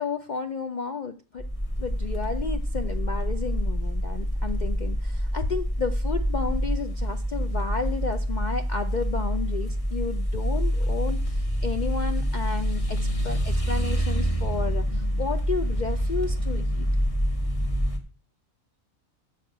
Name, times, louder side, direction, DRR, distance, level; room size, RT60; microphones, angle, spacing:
voice 1, 0.0-1.5 1.8-16.9, left 5 dB, 55° left, 7 dB, 0.5 m, -32 dB
sound 1, 1.4-18.0, equal, 25° left, 1.3 m, -26 dB
7.0 x 6.6 x 7.7 m, 0.38 s
omnidirectional pair, 1.4 m